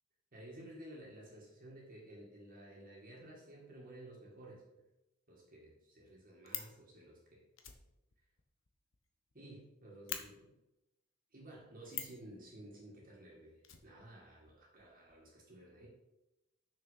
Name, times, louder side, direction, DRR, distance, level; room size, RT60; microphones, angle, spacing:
voice 1, 0.3-4.8 5.3-7.4 9.3-10.5 11.3-15.9, right 1 dB, 40° right, -3 dB, 2.2 m, -54 dB
Fire, 6.0-6.8 7.6-9.3 9.6-9.7 10.1-10.2 11.9-12.2 13.6-14.5 14.8-14.9 15.1-15.2, left 10 dB, 60° left, 1.0 m, -44 dB
6.7 x 6.6 x 5.8 m, 0.95 s
head